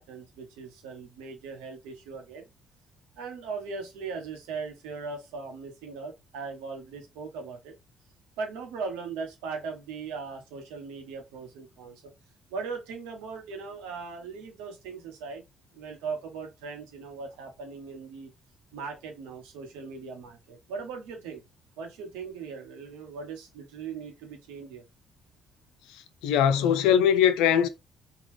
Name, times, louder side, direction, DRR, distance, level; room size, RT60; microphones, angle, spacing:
voice 1, 0.0-2.5 3.2-7.7 8.4-12.0 12.5-15.4 15.7-18.3 18.7-21.4 21.8-24.8, right 5 dB, 90° right, 1.0 m, -39 dB
voice 2, 25.9-27.7, left 9 dB, 85° left, 0.4 m, -22 dB
3.7 x 2.3 x 3.2 m
supercardioid pair, 65°, 0 cm